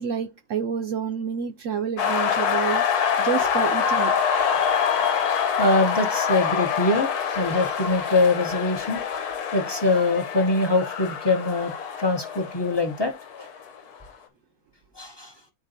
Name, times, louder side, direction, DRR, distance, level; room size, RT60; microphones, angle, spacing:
voice 1, 0.0-2.8 3.2-4.1, right 7 dB, 70° right, 0.9 m, -28 dB
sound 1, 2.0-13.7, left 7 dB, 90° left, 1.3 m, -25 dB
voice 2, 5.6-7.1 7.4-9.0 9.5-11.7 12.0-13.1 13.4-13.5 15.0-15.3, left 2 dB, 25° left, 0.5 m, -23 dB
9.5 x 3.8 x 2.6 m
omnidirectional pair, 1.6 m